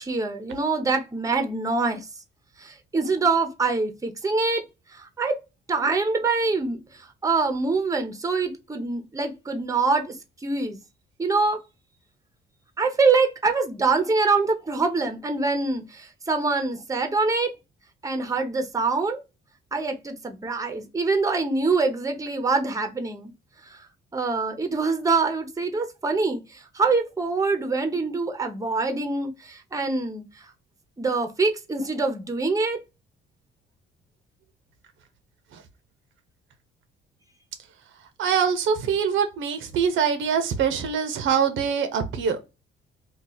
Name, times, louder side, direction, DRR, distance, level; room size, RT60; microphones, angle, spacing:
voice 1, 0.0-2.1 2.6-4.6 4.9-5.4 5.7-10.2 10.4-10.8 11.2-11.6 12.8-17.5 18.0-19.2 19.7-23.3 23.7-23.8 24.1-30.5 31.0-32.8, right 4 dB, 15° right, 0.7 m, -25 dB
voice 2, 38.2-42.4, right 7 dB, 80° right, 0.7 m, -24 dB
2.8 x 2.3 x 3.8 m
cardioid pair, 90°, 20 cm